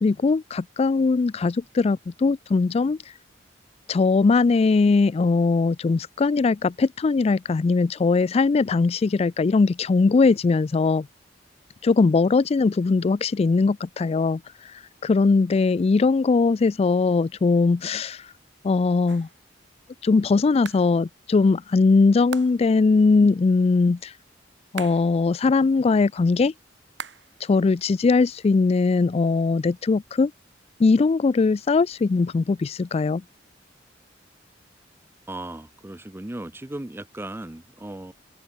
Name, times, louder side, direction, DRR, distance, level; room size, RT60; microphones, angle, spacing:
voice 1, 0.0-3.0 3.9-11.1 11.8-18.3 18.6-19.3 20.0-24.1 24.7-26.5 27.4-30.3 30.8-33.2, left 4 dB, 35° left, 0.3 m, -20 dB
sound 1, 19.1-19.5 20.6-21.0 22.3-22.8 24.8-25.2 27.0-27.5 27.7-28.7, right 6 dB, 70° right, 2.6 m, -40 dB
voice 2, 35.3-38.1, right 1 dB, 15° right, 0.6 m, -36 dB
head